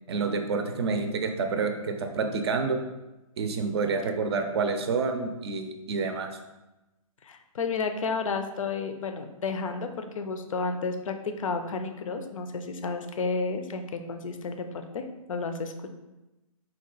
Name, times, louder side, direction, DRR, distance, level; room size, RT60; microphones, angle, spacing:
voice 1, 0.1-2.8 3.4-6.3, right 4 dB, 45° right, 6 dB, 0.5 m, -28 dB
voice 2, 7.2-15.9, left 4 dB, 60° left, 7 dB, 0.5 m, -32 dB
4.2 x 2.3 x 3.7 m, 1.0 s
figure-of-eight pair, 140°, 19 cm